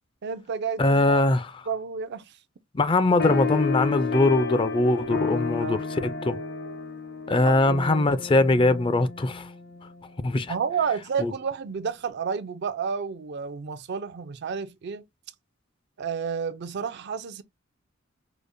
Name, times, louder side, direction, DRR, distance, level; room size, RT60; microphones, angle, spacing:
voice 1, 0.2-1.2 1.7-2.3 5.6-5.8 7.5-7.6 10.5-15.0 16.0-17.4, right 6 dB, 55° right, 0.4 m, -30 dB
voice 2, 0.8-1.5 2.7-6.4 7.3-9.5 10.2-10.5 11.2-11.3, left 2 dB, 25° left, 0.4 m, -22 dB
sound 1, 3.2-10.1, left 4 dB, 55° left, 0.7 m, -31 dB
5.0 x 2.1 x 2.5 m
head